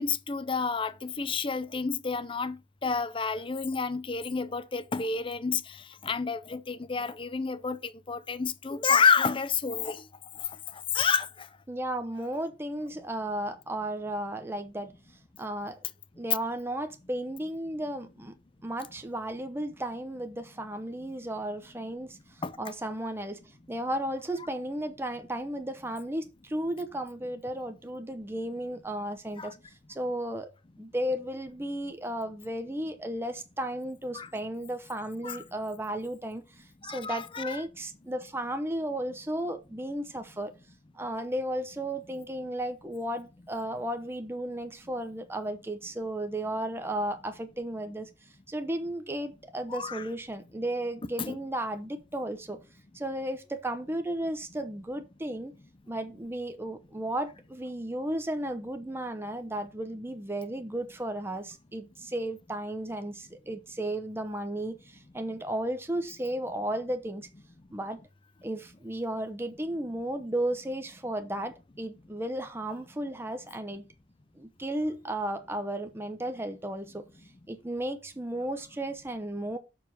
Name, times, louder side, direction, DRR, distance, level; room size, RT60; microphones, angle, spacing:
voice 1, 0.0-10.0 10.4-10.5 10.9-11.5 22.4-22.6 29.4-29.5 34.1-34.3 35.2-35.4 36.8-37.6 49.7-50.1 51.2-51.4, left 5 dB, 30° left, 0.6 m, -29 dB
voice 2, 11.7-14.9 15.4-15.8 16.2-18.3 18.6-23.4 23.7-29.6 29.9-30.5 30.8-40.5 40.9-48.1 48.5-52.6 52.9-55.5 55.9-67.3 67.7-68.0 68.4-73.8 74.4-77.1 77.5-79.6, right 1 dB, 15° right, 0.7 m, -34 dB
6.8 x 4.7 x 5.8 m
head